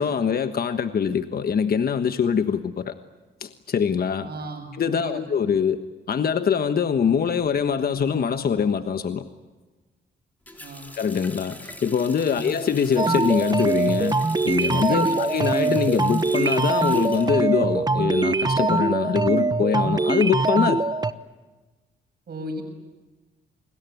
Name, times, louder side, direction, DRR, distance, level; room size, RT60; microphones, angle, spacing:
voice 1, 0.0-2.9 3.4-4.3 4.7-5.8 6.1-9.2 11.0-14.2 14.4-20.8, left 7 dB, 50° left, 9 dB, 1.3 m, -23 dB
voice 2, 4.2-5.2 10.6-10.9 12.3-12.5 14.9-15.2 22.3-22.6, right 1 dB, 55° right, 5 dB, 7.2 m, -35 dB
Water tap faucet, 10.5-18.2 18.5-19.6, left 1 dB, 10° left, 3.5 m, -43 dB
sound 1, 13.0-21.1, right 3 dB, 20° right, 1.0 m, -23 dB
29.0 x 21.0 x 9.4 m, 1.2 s
cardioid pair, 100°, 20 cm